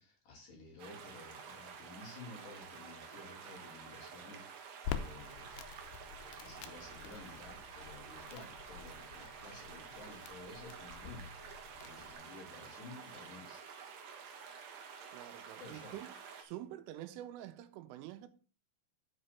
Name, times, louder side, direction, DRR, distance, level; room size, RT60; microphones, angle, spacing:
voice 1, 0.0-5.6 6.4-11.3 11.8-13.6 15.4-15.9, left 3 dB, 45° left, 3.7 m, -53 dB
sound 1, 0.8-16.4, right 6 dB, 70° right, 2.0 m, -50 dB
Crackle, 4.8-12.1, left 8 dB, 80° left, 2.7 m, -47 dB
voice 2, 15.1-16.1 16.4-18.3, right 13 dB, 90° right, 3.2 m, -47 dB
7.7 x 5.6 x 6.6 m
omnidirectional pair, 5.7 m